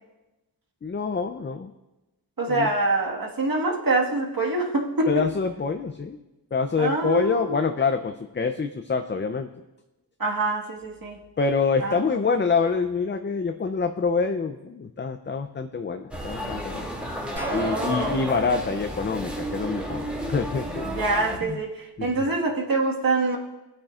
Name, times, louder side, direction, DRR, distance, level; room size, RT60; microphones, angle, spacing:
voice 1, 0.8-1.7 2.5-2.7 5.1-6.2 6.5-9.5 11.4-16.9 17.5-20.9 21.4-21.6 22.0-22.1, left 5 dB, 30° left, 7 dB, 0.5 m, -26 dB
voice 2, 2.4-5.3 6.8-7.6 10.2-11.2 11.8-12.0 17.6-18.2 20.9-23.4, right 2 dB, 55° right, -1 dB, 1.7 m, -25 dB
sound 1, 16.1-21.4, equal, 5° right, 2.4 m, -32 dB
sound 2, 17.4-20.2, right 2 dB, 25° right, 2.4 m, -36 dB
18.5 x 8.7 x 2.4 m, 1.0 s
wide cardioid pair, 90°, 40 cm